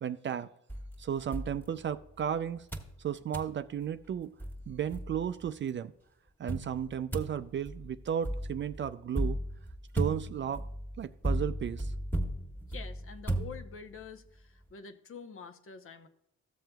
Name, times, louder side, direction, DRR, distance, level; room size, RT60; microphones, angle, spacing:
voice 1, 0.0-0.5 1.0-2.7 3.0-4.3 4.7-5.9 6.4-9.4 9.9-10.6 11.0-11.9, right 9 dB, 40° right, 0.4 m, -34 dB
sound 1, 0.7-2.3 2.7-3.0 3.3-3.6 4.1-4.2 4.4-5.5 6.5-14.1, right 1 dB, 5° left, 1.5 m, -36 dB
voice 2, 12.7-16.1, left 6 dB, 45° left, 0.8 m, -47 dB
14.5 x 7.4 x 2.3 m
cardioid pair, 90°, 30 cm